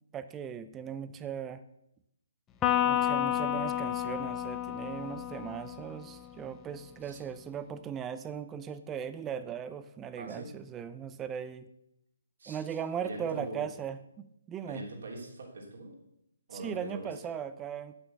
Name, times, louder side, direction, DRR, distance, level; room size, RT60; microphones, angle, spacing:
voice 1, 0.1-1.6 2.8-11.7 12.5-14.8 16.5-17.9, right 8 dB, 15° right, 12 dB, 0.6 m, -38 dB
Electric guitar, 2.6-6.2, left 11 dB, 15° left, 0.8 m, -30 dB
voice 2, 10.2-10.5 12.4-12.6 13.0-13.7 14.6-15.9 16.5-17.2, right 2 dB, 60° right, 0 dB, 3.1 m, -42 dB
8.9 x 8.9 x 6.9 m, 0.81 s
figure-of-eight pair, 140°, 0 cm